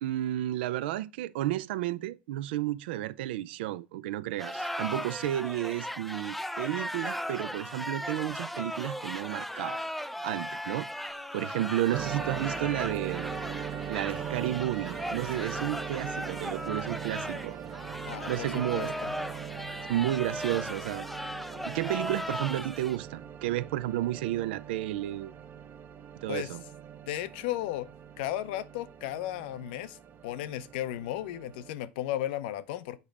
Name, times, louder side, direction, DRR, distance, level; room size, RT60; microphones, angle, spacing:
voice 1, 0.0-9.8 10.2-10.9 11.3-13.3 13.9-17.6 18.3-18.9 19.9-21.1 21.6-25.3 26.1-26.6, right 14 dB, 65° right, 0.5 m, -32 dB
sound 1, 4.4-23.0, left 1 dB, ahead, 0.4 m, -37 dB
sound 2, 11.9-31.7, right 8 dB, 35° right, 0.9 m, -41 dB
voice 2, 18.0-19.1 26.3-26.6 27.1-27.9 28.2-30.0 30.2-33.0, left 13 dB, 60° left, 0.6 m, -35 dB
8.1 x 5.8 x 3.3 m
figure-of-eight pair, 80°, 6 cm